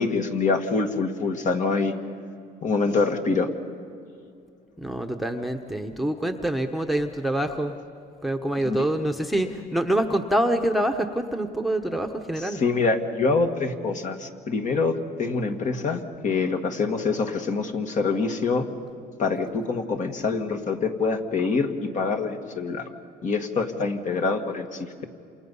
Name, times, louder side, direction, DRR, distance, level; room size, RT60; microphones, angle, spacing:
voice 1, 0.0-2.0 2.6-3.5 8.6-8.8 12.4-18.7 19.2-22.9 23.2-25.0, left 4 dB, 45° left, 4 dB, 2.0 m, -25 dB
voice 2, 4.8-7.7 8.2-12.6, right 1 dB, ahead, 5 dB, 1.1 m, -26 dB
28.0 x 27.5 x 5.6 m, 2.4 s
cardioid pair, 110°, 17 cm